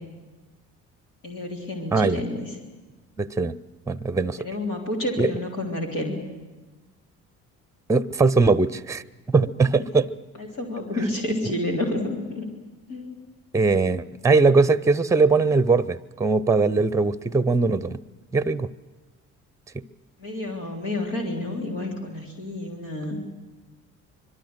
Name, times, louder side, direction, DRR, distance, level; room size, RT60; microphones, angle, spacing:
voice 1, 1.2-2.5 4.4-6.2 10.4-12.5 12.9-13.1 20.2-23.2, left 1 dB, 75° left, 0 dB, 3.6 m, -29 dB
voice 2, 3.2-3.6 3.9-4.4 5.2-5.3 7.9-10.1 13.5-18.0 18.3-18.7 19.7-19.8, right 4 dB, 5° right, 19 dB, 0.7 m, -21 dB
25.0 x 22.5 x 7.9 m, 1.2 s
figure-of-eight pair, 50°, 42 cm